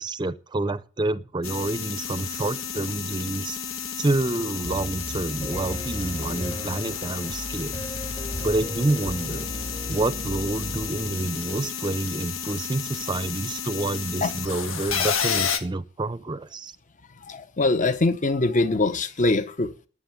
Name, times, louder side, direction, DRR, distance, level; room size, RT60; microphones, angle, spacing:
voice 1, 0.0-3.6 4.0-7.8 8.4-9.5 9.9-16.7, right 2 dB, 20° right, 0.5 m, -28 dB
sound 1, 1.4-15.6, left 7 dB, 75° left, 1.6 m, -32 dB
Piano, 4.6-11.7, equal, 25° left, 1.3 m, -36 dB
voice 2, 17.3-19.9, left 2 dB, 40° left, 0.9 m, -23 dB
11.5 x 7.6 x 8.7 m
head